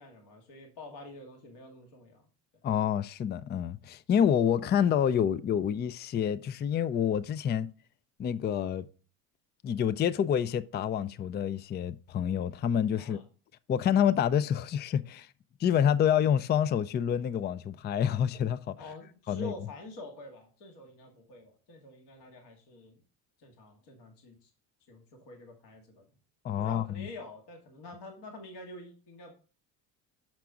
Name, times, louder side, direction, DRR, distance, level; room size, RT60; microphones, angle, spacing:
voice 1, 0.0-2.3 13.0-13.2 18.8-23.0 23.4-24.5 24.9-26.0 26.6-29.3, left 2 dB, 60° left, 2.2 m, -47 dB
voice 2, 2.6-7.7 8.2-8.9 9.6-13.2 13.7-15.3 15.6-18.8 19.3-19.5 26.4-27.0, left 9 dB, 25° left, 0.3 m, -27 dB
6.0 x 5.9 x 3.7 m
supercardioid pair, 85°, 45 cm